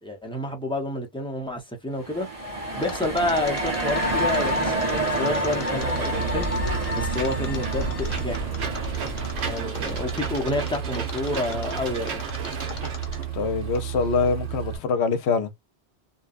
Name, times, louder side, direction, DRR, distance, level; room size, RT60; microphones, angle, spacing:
voice 1, 0.0-2.3 2.8-6.7 6.9-8.5 9.4-12.3, left 2 dB, 5° left, 0.6 m, -29 dB
sound 1, 2.0-10.7, right 1 dB, 35° right, 1.0 m, -28 dB
Mechanisms, 2.8-13.4 13.7-13.8, left 4 dB, 50° left, 0.8 m, -40 dB
Engine / Mechanisms, 5.8-14.8, right 7 dB, 80° right, 1.1 m, -31 dB
voice 2, 13.3-15.5, left 5 dB, 80° left, 0.9 m, -24 dB
2.7 x 2.2 x 2.3 m
omnidirectional pair, 1.1 m